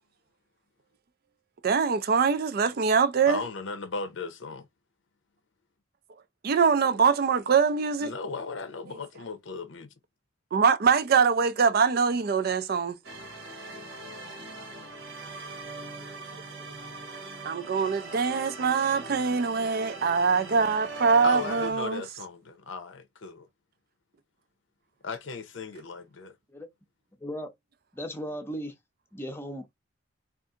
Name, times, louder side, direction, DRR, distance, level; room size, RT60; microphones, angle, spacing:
voice 1, 1.6-3.4 6.4-8.1 10.5-13.0 17.4-22.0, right 5 dB, 50° right, 0.4 m, -23 dB
voice 2, 3.3-4.7 8.0-9.9 21.2-23.5 25.0-26.3, left 4 dB, 75° left, 0.7 m, -36 dB
sound 1, 13.0-21.7, right 2 dB, 70° right, 1.1 m, -41 dB
voice 3, 27.9-28.7 29.1-29.7, equal, 10° left, 0.6 m, -36 dB
2.7 x 2.4 x 3.6 m
head